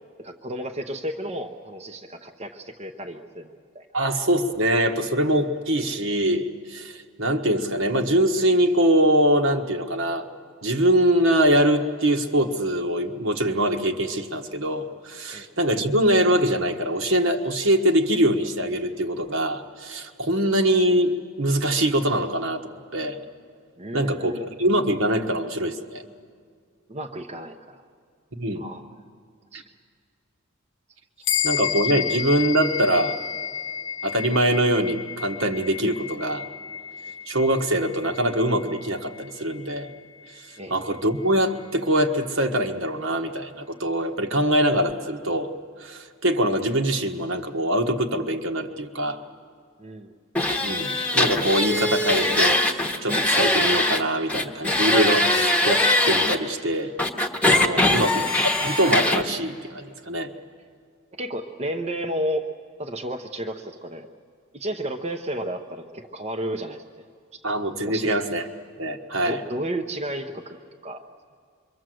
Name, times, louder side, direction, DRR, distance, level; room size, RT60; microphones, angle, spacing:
voice 1, 0.2-3.9 15.3-15.5 23.8-24.5 26.9-27.8 28.6-28.8 29.5-29.6 31.3-31.4 40.6-40.8 49.8-50.1 61.1-62.5 62.8-64.1 64.5-67.1 67.9-68.1 69.3-70.6 70.8-71.0, right 1 dB, 30° right, 3 dB, 0.8 m, -32 dB
voice 2, 3.9-10.2 10.6-23.2 23.9-26.0 28.4-28.6 31.4-33.2 34.0-36.4 37.3-39.9 40.7-45.5 45.8-49.2 50.6-56.9 57.5-58.3 58.6-60.3 67.4-68.4 68.8-69.4, right 1 dB, 65° right, 5 dB, 1.4 m, -23 dB
sound 1, 31.2-41.0, left 8 dB, 60° left, 0.9 m, -32 dB
sound 2, 50.3-54.0 54.3-56.4 57.0-59.2, left 1 dB, 5° left, 1.1 m, -21 dB
26.0 x 23.5 x 7.7 m, 2.1 s
head